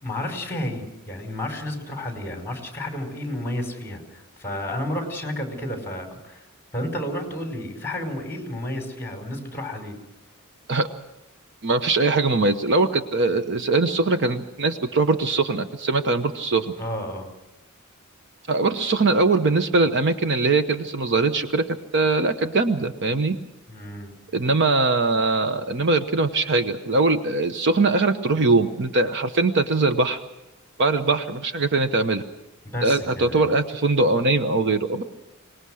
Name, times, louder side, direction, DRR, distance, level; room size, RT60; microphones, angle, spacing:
voice 1, 0.0-6.5 6.7-10.0 16.8-17.3 23.7-24.1 32.6-33.5, left 1 dB, 10° left, 3 dB, 4.9 m, -31 dB
voice 2, 11.6-16.7 18.5-23.4 24.3-30.2 30.8-32.2 32.8-35.0, right 3 dB, 55° right, 9 dB, 1.0 m, -21 dB
24.5 x 20.0 x 6.4 m, 0.95 s
head